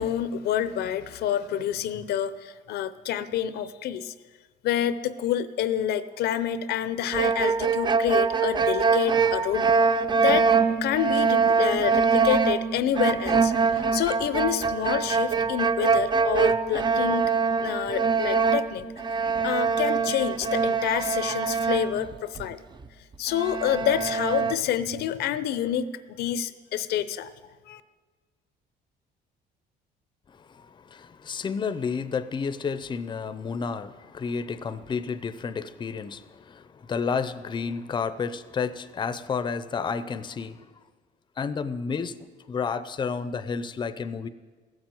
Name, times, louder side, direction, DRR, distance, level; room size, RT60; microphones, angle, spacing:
voice 1, 0.0-4.1 4.6-9.8 10.2-17.3 17.6-18.8 19.2-22.6 23.2-25.9 26.2-27.3 27.7-27.8, left 10 dB, 75° left, 14 dB, 0.6 m, -28 dB
sound 1, 7.1-22.5 22.8-22.9 23.3-24.5, right 5 dB, 25° right, 0.5 m, -24 dB
voice 2, 30.5-40.7 41.4-42.2 42.5-44.3, left 5 dB, 25° left, 13 dB, 0.6 m, -31 dB
15.5 x 7.2 x 7.7 m, 1.4 s
cardioid pair, 110°, 17 cm